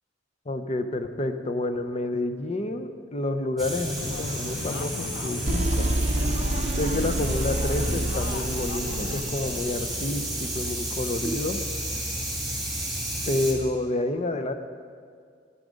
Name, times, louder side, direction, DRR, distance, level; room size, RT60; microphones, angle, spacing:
voice 1, 0.5-5.9 6.8-11.6 13.3-14.5, left 2 dB, 35° left, 8 dB, 0.6 m, -29 dB
sound 1, 3.6-13.5, right 1 dB, ahead, 2.3 m, -32 dB
sound 2, 3.9-9.2, left 6 dB, 75° left, 0.3 m, -39 dB
sound 3, 5.4-10.2, right 1 dB, 35° right, 0.6 m, -28 dB
11.5 x 9.8 x 5.2 m, 2.1 s
head